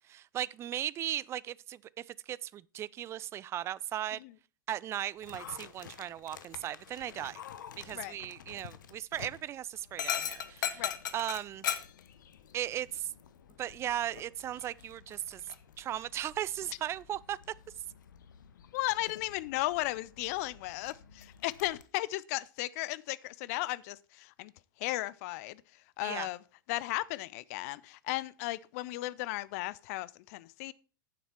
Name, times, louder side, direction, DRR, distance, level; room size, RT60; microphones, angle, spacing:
voice 1, 0.1-4.2 4.7-7.4 7.8-11.7 12.5-13.1 13.6-15.4 15.8-17.4 26.0-26.3, right 11 dB, 25° right, 0.3 m, -37 dB
Dog, 5.2-21.8, left 9 dB, 65° left, 0.9 m, -43 dB
voice 2, 18.7-24.5 24.8-25.6 26.0-26.4 26.7-30.7, left 18 dB, 50° left, 0.5 m, -35 dB
9.2 x 7.2 x 4.3 m
figure-of-eight pair, 90°, 11 cm